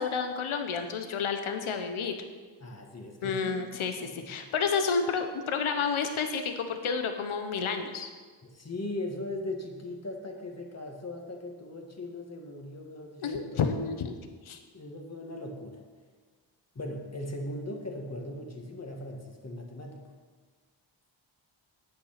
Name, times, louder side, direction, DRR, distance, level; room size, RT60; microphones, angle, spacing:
voice 1, 0.0-2.1 3.2-8.1 13.2-14.1 14.4-14.6, left 5 dB, 75° left, 6 dB, 1.0 m, -30 dB
voice 2, 2.6-3.6 4.0-4.3 8.4-13.6 14.7-15.8 16.8-20.1, left 1 dB, 30° left, 2 dB, 1.8 m, -39 dB
9.6 x 8.6 x 5.8 m, 1.5 s
wide cardioid pair, 85°, 49 cm